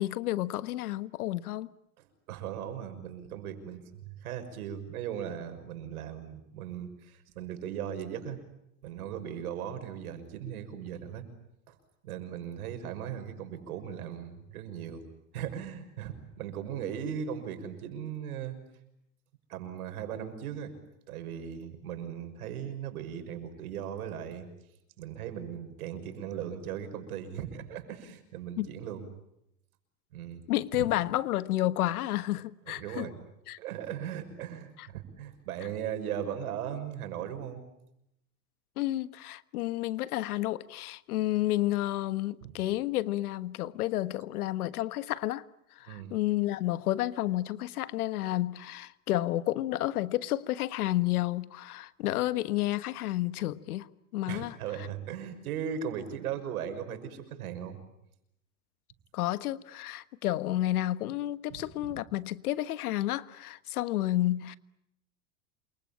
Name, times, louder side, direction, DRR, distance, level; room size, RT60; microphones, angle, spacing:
voice 1, 0.0-1.7 28.6-28.7 30.5-33.1 33.5-33.6 34.8-34.9 38.8-45.4 45.8-53.9 54.1-54.9 59.1-64.6, left 15 dB, 85° left, 1.5 m, -31 dB
voice 2, 2.3-8.4 8.8-11.3 11.7-11.8 12.0-15.0 15.3-18.6 19.5-20.7 21.1-24.5 25.0-29.1 30.1-30.4 30.7-30.9 32.7-33.2 33.6-37.7 42.4-42.5 45.9-46.1 54.3-57.8 61.5-62.0, right 9 dB, 80° right, 6.2 m, -38 dB
28.5 x 24.0 x 8.8 m
supercardioid pair, 130°, 43 cm